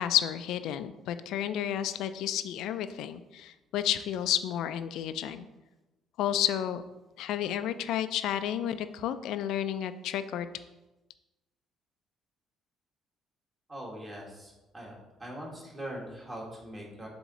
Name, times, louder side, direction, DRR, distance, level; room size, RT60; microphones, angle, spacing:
voice 1, 0.0-5.5 6.2-6.8 7.2-10.5, left 10 dB, 75° left, 11 dB, 0.4 m, -31 dB
voice 2, 13.7-14.9 15.2-17.1, right 1 dB, 20° right, -2 dB, 1.7 m, -41 dB
7.1 x 3.6 x 4.2 m, 1.1 s
cardioid pair, 110°, 0 cm